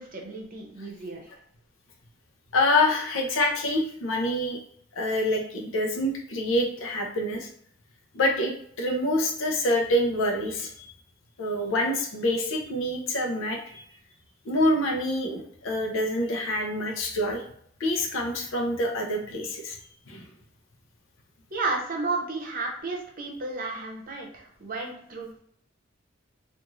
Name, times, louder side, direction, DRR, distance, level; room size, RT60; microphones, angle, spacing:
voice 1, 0.0-1.3 21.5-25.4, right 3 dB, 45° right, 0 dB, 0.7 m, -33 dB
voice 2, 2.5-4.6 4.9-7.5 8.1-10.9 11.4-13.8 14.4-17.4 17.8-19.8 20.1-20.2, left 1 dB, 90° left, 1 dB, 0.6 m, -26 dB
2.5 x 2.4 x 3.0 m, 0.66 s
head